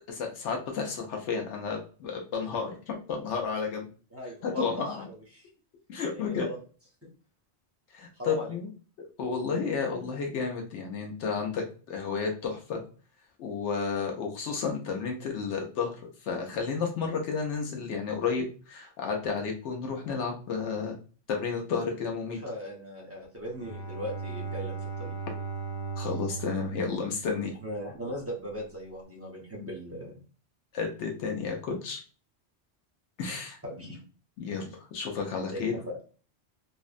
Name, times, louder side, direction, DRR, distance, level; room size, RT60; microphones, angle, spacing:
voice 1, 0.1-3.9 4.4-5.1 5.9-6.5 7.9-8.7 9.0-12.8 13.4-16.0 16.2-21.0 21.3-22.4 26.0-27.5 29.5-29.6 30.7-32.0 33.2-33.6 34.4-35.7, left 5 dB, 85° left, 1 dB, 0.9 m, -32 dB
voice 2, 4.1-5.5 6.1-6.6 8.2-8.6 22.4-25.1 27.6-30.2 33.6-34.0 35.5-36.0, equal, 20° right, -3 dB, 0.4 m, -38 dB
Bowed string instrument, 23.5-28.0, right 5 dB, 50° left, 0.6 m, -38 dB
2.6 x 2.1 x 2.4 m, 0.38 s
omnidirectional pair, 1.2 m